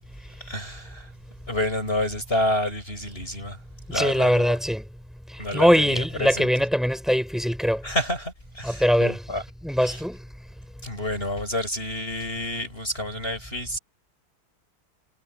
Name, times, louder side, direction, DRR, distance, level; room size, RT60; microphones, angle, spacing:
voice 1, 0.4-1.1 1.5-3.6 3.9-4.5 5.4-6.5 7.8-9.4 9.8-10.0 10.8-13.8, left 1 dB, 35° left, 8.2 m, -29 dB
voice 2, 3.9-4.8 5.5-7.8 8.6-9.2 9.6-10.2, equal, ahead, 5.0 m, -21 dB
omnidirectional pair, 1.8 m